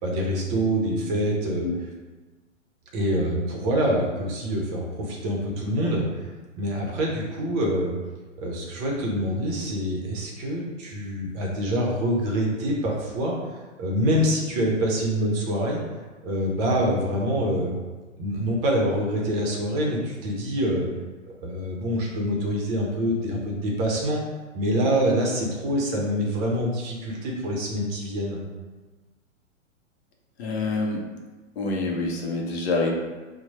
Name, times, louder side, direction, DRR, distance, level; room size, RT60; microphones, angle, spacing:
voice 1, 0.0-1.7 2.9-6.3 6.6-7.9 8.4-13.3 13.8-15.8 16.2-17.7 18.2-20.9 21.4-24.2 24.5-28.4, equal, 30° right, -2 dB, 0.7 m, -25 dB
voice 2, 30.4-31.1 31.6-32.9, left 3 dB, 55° left, 0 dB, 0.7 m, -26 dB
3.0 x 2.1 x 4.0 m, 1.3 s
hypercardioid pair, 115°, 40 cm